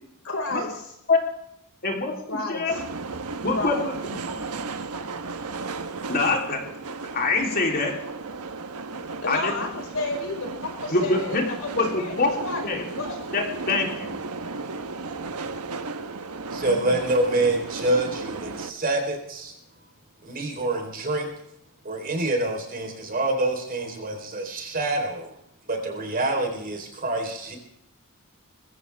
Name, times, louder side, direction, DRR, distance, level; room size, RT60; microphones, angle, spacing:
voice 1, 0.2-0.8 2.3-2.8 3.5-3.9 9.2-13.2 16.6-17.0, left 2 dB, 65° left, 2 dB, 4.9 m, -32 dB
voice 2, 1.8-2.7 3.4-3.9 4.3-4.4 6.1-6.6 7.1-7.9 9.2-9.5 10.9-11.4 11.7-11.9 12.2-12.3 12.6-12.8 13.3-14.1, left 3 dB, 45° left, 1 dB, 3.4 m, -24 dB
sound 1, 2.7-18.7, right 3 dB, 85° right, 1.2 m, -35 dB
voice 3, 16.5-19.5 20.2-21.3 21.8-25.3 25.7-27.6, right 2 dB, 40° right, 3 dB, 3.8 m, -26 dB
22.0 x 15.5 x 3.5 m, 0.79 s
head